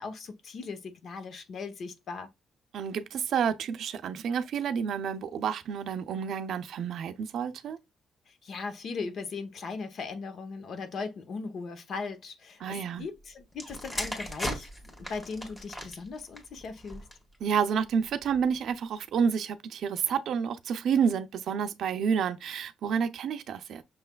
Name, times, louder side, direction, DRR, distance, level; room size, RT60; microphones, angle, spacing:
voice 1, 0.0-2.3 8.3-17.0, left 4 dB, 60° left, 0.8 m, -38 dB
voice 2, 2.7-7.8 12.6-13.1 17.4-23.8, right 7 dB, 70° right, 0.5 m, -29 dB
sound 1, 13.5-17.4 18.1-18.4, equal, 15° left, 1.4 m, -38 dB
6.1 x 3.3 x 2.2 m
cardioid pair, 90°, 0 cm